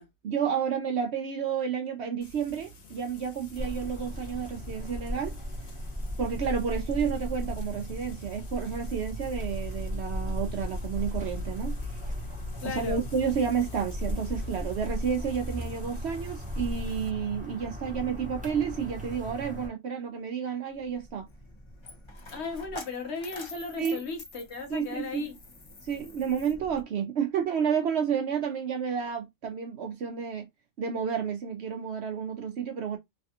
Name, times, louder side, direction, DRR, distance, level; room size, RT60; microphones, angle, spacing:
voice 1, 0.2-5.4 6.2-11.8 12.6-21.3 23.8-24.0 24.7-25.3 25.8-30.5 30.8-33.0, right 7 dB, 65° right, 0.8 m, -31 dB
Frying (food), 2.2-17.1, right 2 dB, 85° left, 1.5 m, -49 dB
sound 1, 3.5-19.7, left 1 dB, 5° right, 0.7 m, -36 dB
voice 2, 12.6-13.0 22.3-25.3, left 4 dB, 60° left, 1.0 m, -36 dB
Coin (dropping), 20.7-26.8, left 2 dB, 35° left, 0.4 m, -47 dB
3.2 x 2.3 x 2.7 m
omnidirectional pair, 1.4 m